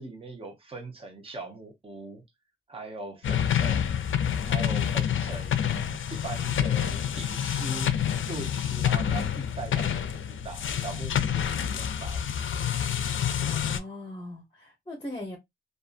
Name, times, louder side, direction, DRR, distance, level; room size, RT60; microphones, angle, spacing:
voice 1, 0.0-2.2 2.7-4.1 4.5-7.9 8.3-12.7, right 3 dB, 30° right, 0.7 m, -41 dB
sound 1, 3.2-13.8, left 9 dB, 80° left, 0.4 m, -28 dB
voice 2, 13.4-15.4, left 1 dB, 20° left, 0.8 m, -39 dB
2.6 x 2.3 x 2.4 m
wide cardioid pair, 145°, 20 cm